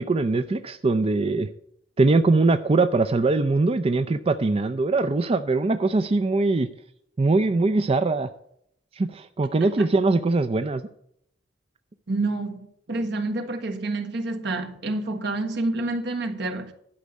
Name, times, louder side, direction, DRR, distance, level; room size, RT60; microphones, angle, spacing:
voice 1, 0.0-1.5 2.0-6.7 7.2-8.3 8.9-10.8, right 3 dB, 30° right, 0.4 m, -22 dB
voice 2, 12.1-16.7, right 2 dB, 65° right, 1.4 m, -28 dB
12.0 x 5.3 x 8.1 m
head